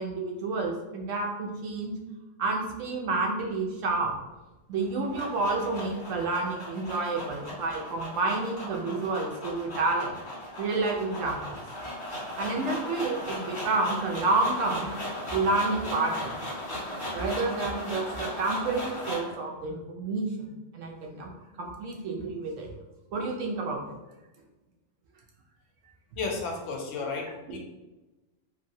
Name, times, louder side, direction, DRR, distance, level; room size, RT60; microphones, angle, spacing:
voice 1, 0.0-1.9 2.4-4.1 4.7-10.1 10.6-11.6 11.8-11.9 12.4-14.9 15.3-16.4 17.1-20.5 20.7-21.3 21.6-22.7 23.1-23.8, right 3 dB, 80° right, 0 dB, 1.0 m, -29 dB
sound 1, 4.7-19.3, left 1 dB, 55° left, 1.5 m, -37 dB
voice 2, 26.2-27.6, left 4 dB, 70° left, 1 dB, 0.9 m, -33 dB
3.0 x 2.6 x 2.6 m, 1.1 s
omnidirectional pair, 1.3 m